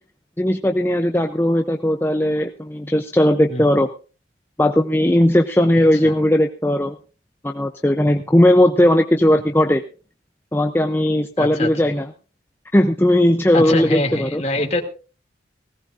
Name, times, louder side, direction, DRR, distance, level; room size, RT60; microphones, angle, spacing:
voice 1, 0.4-3.9 4.6-7.0 7.4-9.8 10.5-12.1 12.7-14.4, left 1 dB, 10° left, 5 dB, 0.6 m, -17 dB
voice 2, 11.4-11.7 13.5-14.8, left 1 dB, 35° left, 3 dB, 2.7 m, -23 dB
19.0 x 17.0 x 2.6 m, 0.36 s
head